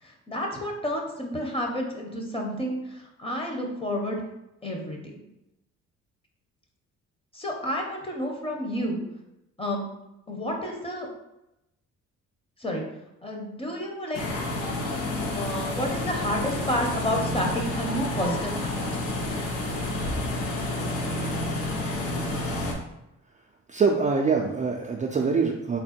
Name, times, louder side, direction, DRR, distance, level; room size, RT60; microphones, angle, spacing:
voice 1, 0.0-4.2 4.6-5.0 7.3-9.0 9.6-9.8 10.3-11.1 12.6-12.8 13.2-14.4 15.3-19.1, equal, 20° left, 1 dB, 0.9 m, -30 dB
sound 1, 14.1-22.7, left 1 dB, 85° left, 0.8 m, -29 dB
voice 2, 23.7-25.8, right 5 dB, 25° right, 0 dB, 0.4 m, -24 dB
3.6 x 2.2 x 4.2 m, 0.89 s
cardioid pair, 90°, 30 cm